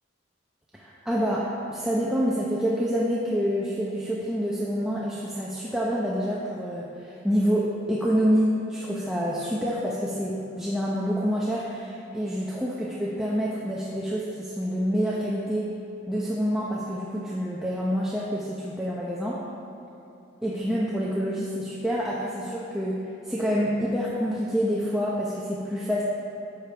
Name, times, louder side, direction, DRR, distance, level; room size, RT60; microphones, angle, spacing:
voice 1, 0.7-15.7 16.1-19.4 20.4-22.9 23.2-26.0, equal, 5° right, -6 dB, 0.8 m, -27 dB
12.0 x 8.5 x 3.4 m, 2.9 s
head